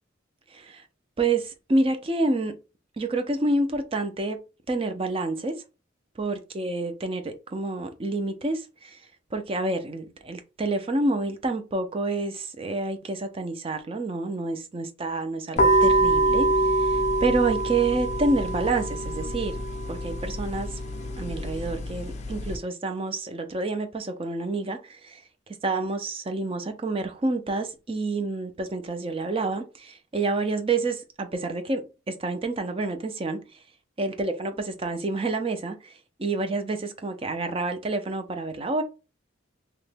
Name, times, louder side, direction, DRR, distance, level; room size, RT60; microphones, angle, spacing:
voice 1, 0.5-0.8 1.2-2.5 3.0-4.4 4.7-5.5 6.2-9.0 9.3-19.6 19.9-20.8 21.2-25.2 25.5-33.4 34.0-35.9 36.2-38.8, right 2 dB, 30° right, 0.5 m, -28 dB
sound 1, 15.6-22.6, right 2 dB, 35° left, 0.5 m, -25 dB
2.9 x 2.1 x 3.3 m
head